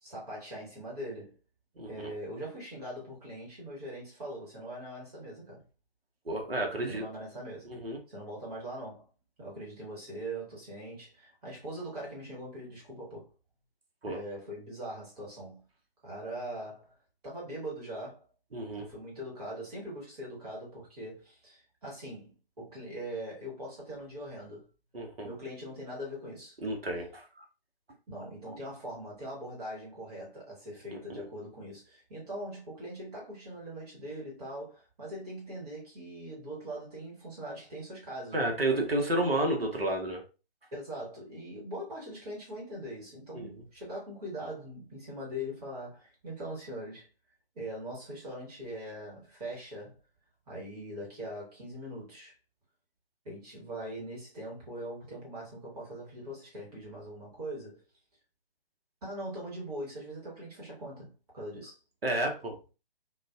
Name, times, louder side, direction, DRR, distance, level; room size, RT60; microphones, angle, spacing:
voice 1, 0.0-1.3 1.9-5.6 6.9-7.7 8.1-9.1 9.4-13.3 14.1-15.6 16.0-16.9 17.2-18.2 18.8-24.7 25.2-26.6 28.1-38.5 39.3-39.5 40.7-47.1 47.5-50.0 50.5-52.3 53.2-57.8 59.0-61.8, right 1 dB, 40° right, 1.3 m, -41 dB
voice 2, 1.8-2.1 6.3-7.0 7.7-8.0 14.0-14.2 18.5-18.9 24.9-25.3 26.6-27.4 30.9-31.3 38.3-40.2 43.3-43.5 62.0-62.6, right 1 dB, 80° right, 0.8 m, -31 dB
2.5 x 2.3 x 2.2 m
figure-of-eight pair, 135°, 29 cm